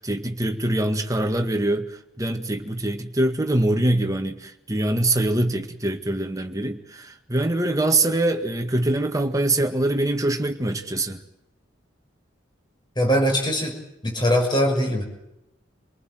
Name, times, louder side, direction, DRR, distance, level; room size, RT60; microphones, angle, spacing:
voice 1, 0.0-11.2, right 1 dB, 20° right, 6 dB, 1.8 m, -24 dB
voice 2, 13.0-13.8 14.0-15.0, equal, 25° left, 2 dB, 6.3 m, -21 dB
27.5 x 19.5 x 7.7 m, 0.85 s
head